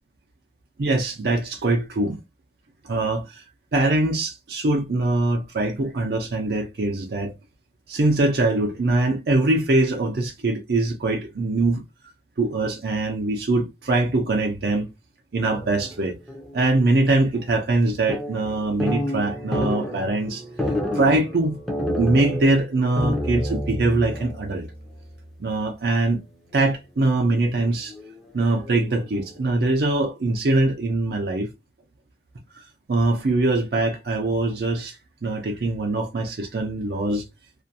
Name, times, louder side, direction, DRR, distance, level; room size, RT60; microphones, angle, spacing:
voice 1, 0.8-2.2 2.8-3.4 3.7-7.3 7.9-11.8 12.4-14.8 15.3-16.2 16.5-20.4 20.9-21.6 22.0-24.7 25.4-26.2 26.5-27.9 28.3-31.5 32.5-35.0 35.2-37.3, right 2 dB, 60° right, 0.5 m, -22 dB
sound 1, 15.5-16.8 17.0-17.1 17.3-17.8 18.1-25.5 25.8-25.9 27.1-27.4 27.9-29.9, left 1 dB, ahead, 0.5 m, -30 dB
2.4 x 2.2 x 2.6 m
head